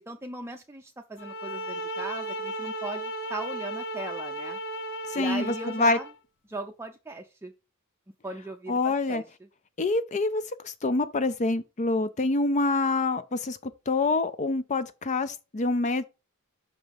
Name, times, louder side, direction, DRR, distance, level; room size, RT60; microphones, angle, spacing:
voice 1, 0.0-4.6 5.1-6.1 6.5-7.5 8.2-9.2, right 2 dB, 10° right, 0.6 m, -38 dB
sound 1, 1.2-6.2, right 1 dB, 60° left, 1.2 m, -35 dB
voice 2, 5.1-6.0 8.7-9.2 9.8-16.0, left 3 dB, 35° left, 0.5 m, -26 dB
6.2 x 5.3 x 4.8 m
head